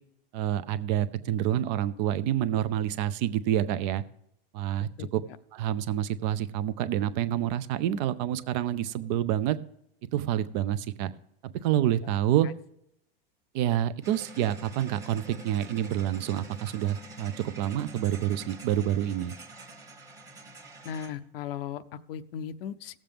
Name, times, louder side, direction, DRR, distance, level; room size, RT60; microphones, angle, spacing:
voice 1, 0.3-4.0 4.5-5.2 5.5-9.6 10.1-11.1 11.6-12.5 13.5-19.3, right 11 dB, 50° right, 14 dB, 0.6 m, -28 dB
sound 1, 14.0-21.2, right 2 dB, 10° right, 1.2 m, -46 dB
voice 2, 20.8-23.0, left 8 dB, 70° left, 12 dB, 0.6 m, -37 dB
17.5 x 7.4 x 3.5 m, 0.77 s
supercardioid pair, 135°, 30 cm